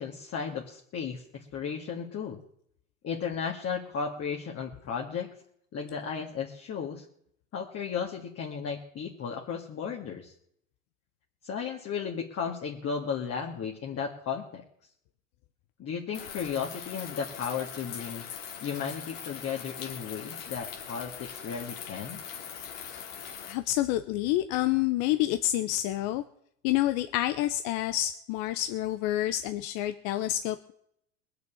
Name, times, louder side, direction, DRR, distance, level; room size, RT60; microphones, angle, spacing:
voice 1, 0.0-2.4 3.0-5.3 5.7-7.0 7.5-10.3 11.4-14.6 15.8-18.2 18.6-22.2, left 6 dB, 40° left, 0 dB, 2.2 m, -34 dB
sound 1, 16.1-23.5, left 8 dB, 80° left, 2.8 m, -41 dB
voice 2, 23.5-26.2 26.6-30.7, left 14 dB, 60° left, 10 dB, 1.0 m, -28 dB
20.0 x 6.9 x 8.5 m, 0.70 s
hypercardioid pair, 95°, 38 cm